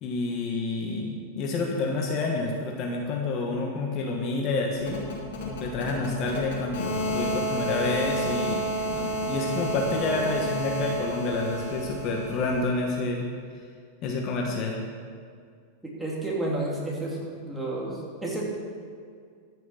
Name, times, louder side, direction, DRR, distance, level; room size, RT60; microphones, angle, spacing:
voice 1, 0.0-5.0 5.4-13.3 14.0-14.8, left 3 dB, 40° left, 0 dB, 1.4 m, -29 dB
sound 1, 4.8-12.7, right 1 dB, 85° left, 3.4 m, -31 dB
voice 2, 16.0-18.4, right 2 dB, 5° right, -5 dB, 2.8 m, -31 dB
14.0 x 6.3 x 5.7 m, 2.1 s
supercardioid pair, 135°, 0 cm